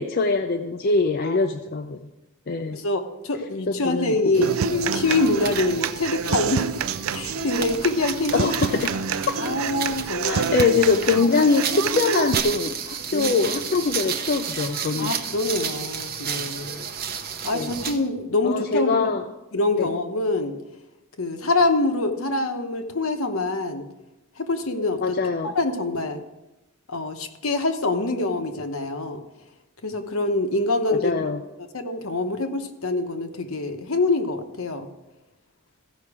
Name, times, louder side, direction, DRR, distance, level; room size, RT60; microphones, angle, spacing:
voice 1, 0.0-2.0 2.5-2.8 3.7-4.5 8.3-9.0 9.3-9.4 10.3-15.1 17.5-17.7 18.4-19.2 19.8-19.9 25.0-25.5 30.9-31.4, left 4 dB, 45° left, 5 dB, 0.5 m, -23 dB
voice 2, 2.7-6.7 7.1-8.3 9.4-10.5 13.1-13.4 15.0-16.8 17.4-19.1 19.5-20.5 21.2-23.8 24.4-25.2 25.5-26.2 26.9-29.2 29.8-31.1 31.7-34.9, left 2 dB, 65° left, 6 dB, 1.0 m, -25 dB
sound 1, 4.3-18.1, right 7 dB, 45° right, 0.7 m, -32 dB
Human voice / Acoustic guitar, 4.4-12.4, right 6 dB, 65° right, 0.4 m, -27 dB
15.0 x 5.7 x 4.8 m, 1.0 s
head